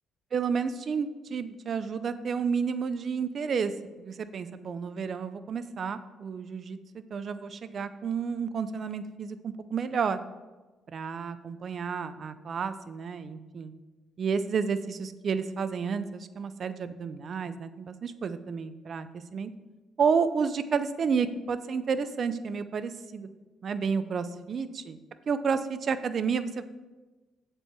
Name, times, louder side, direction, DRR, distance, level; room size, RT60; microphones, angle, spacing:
voice 1, 0.3-3.7 4.0-10.2 10.9-13.7 14.2-19.1 19.3-19.5 20.0-23.3 23.6-25.0 25.3-26.6, right 6 dB, 55° right, 12 dB, 0.5 m, -31 dB
7.7 x 4.5 x 6.8 m, 1.2 s
cardioid pair, 90°, 0 cm